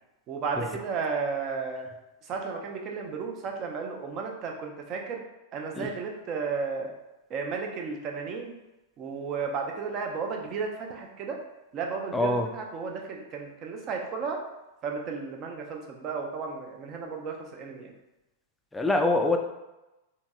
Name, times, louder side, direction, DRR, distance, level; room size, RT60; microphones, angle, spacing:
voice 1, 0.3-1.9 2.2-5.2 5.5-6.9 7.3-8.5 9.0-11.4 11.7-14.4 14.8-17.9, right 5 dB, 40° right, 1 dB, 0.5 m, -33 dB
voice 2, 12.1-12.5 18.7-19.4, left 2 dB, 10° left, 3 dB, 0.3 m, -24 dB
2.9 x 2.6 x 2.3 m, 0.99 s
hypercardioid pair, 105°, 0 cm